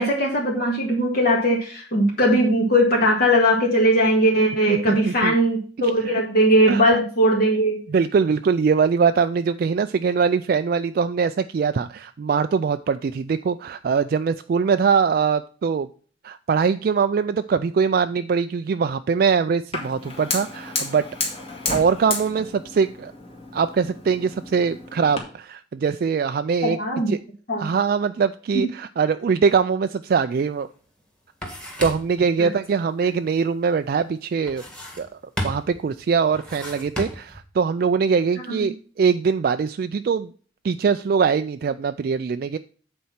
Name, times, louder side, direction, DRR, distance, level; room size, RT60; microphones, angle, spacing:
voice 1, 0.0-7.8 26.6-27.2 27.5-27.7 28.5-28.6 32.4-32.5 33.0-33.1 38.5-38.7, equal, 50° left, -2 dB, 1.9 m, -19 dB
voice 2, 4.7-5.3 6.0-6.2 6.7-6.8 7.9-15.9 16.2-21.1 21.7-23.1 23.5-26.8 27.1-27.2 27.6-30.7 31.8-34.6 35.0-40.3 40.6-42.6, right 5 dB, 50° right, 10 dB, 0.3 m, -22 dB
Fire, 19.7-25.2, left 3 dB, 30° left, 2.0 m, -32 dB
sound 1, 30.5-30.6 31.0-32.2 34.5-35.1 35.4-35.8 36.3-37.4, equal, 5° left, 1.9 m, -33 dB
8.4 x 4.4 x 5.7 m, 0.41 s
head